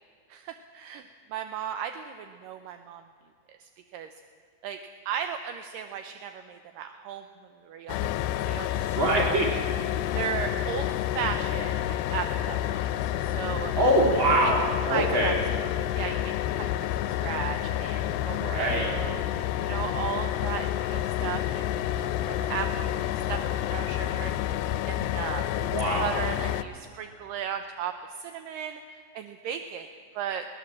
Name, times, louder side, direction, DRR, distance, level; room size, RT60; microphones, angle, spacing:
voice 1, 0.3-1.0 1.3-3.0 3.6-4.1 4.6-4.8 5.1-7.2 7.6-8.1 8.5-9.6 10.1-10.9 11.2-13.7 14.4-14.5 14.9-15.4 15.9-19.2 19.6-21.7 22.0-24.3 24.9-25.5 26.0-30.5, right 8 dB, 75° right, 7 dB, 2.2 m, -36 dB
sound 1, 7.9-26.6, left 12 dB, 80° left, 2.2 m, -29 dB
voice 2, 8.9-9.6 13.7-15.4 18.3-19.0 25.5-26.2, right 1 dB, 30° right, -2 dB, 4.1 m, -24 dB
21.5 x 17.5 x 7.4 m, 2.2 s
omnidirectional pair, 4.4 m